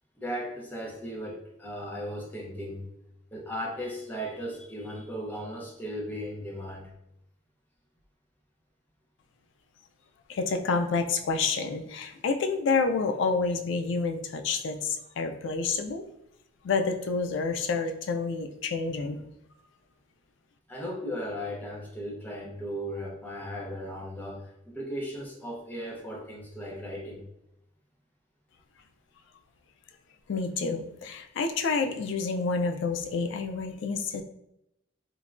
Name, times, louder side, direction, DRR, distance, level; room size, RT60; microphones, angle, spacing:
voice 1, 0.2-2.9 3.3-6.9 20.7-27.2, equal, 10° left, -2 dB, 0.5 m, -36 dB
voice 2, 10.3-16.1 16.6-19.3 30.3-34.2, left 4 dB, 75° left, 5 dB, 0.3 m, -29 dB
3.1 x 2.1 x 2.4 m, 0.83 s
head